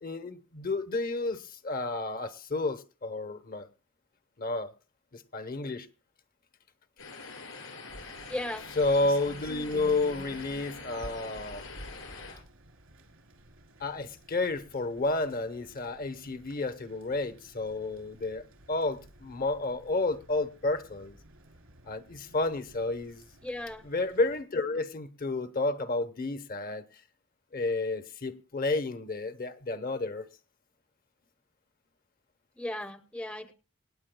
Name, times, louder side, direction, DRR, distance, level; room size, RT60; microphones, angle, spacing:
voice 1, 0.0-3.7 4.4-4.7 5.1-5.9 8.7-11.7 13.8-21.2 21.9-23.2 23.8-26.9 27.5-30.3, left 2 dB, 45° left, 0.9 m, -31 dB
sound 1, 7.0-12.3, left 4 dB, 80° left, 5.9 m, -44 dB
Rain, 7.9-24.4, right 1 dB, 85° right, 3.2 m, -52 dB
voice 2, 8.3-8.7 23.4-23.8 32.6-33.5, left 1 dB, 5° left, 0.7 m, -36 dB
26.5 x 9.5 x 2.2 m
head